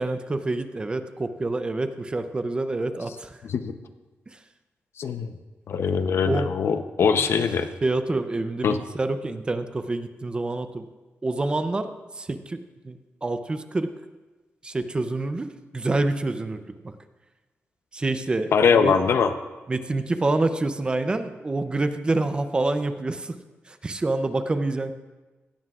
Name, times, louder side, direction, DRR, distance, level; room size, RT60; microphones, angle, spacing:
voice 1, 0.0-3.4 4.3-4.4 6.3-6.5 7.8-10.8 11.2-12.6 12.8-13.9 14.6-16.9 17.9-18.9 19.7-23.4 23.7-24.9, right 2 dB, 20° right, 9 dB, 0.5 m, -27 dB
voice 2, 3.4-3.7 5.0-5.3 5.7-7.7 8.6-8.8 18.5-19.3, left 6 dB, 70° left, 9 dB, 0.7 m, -22 dB
17.0 x 13.5 x 2.4 m, 1.2 s
wide cardioid pair, 175°, 4 cm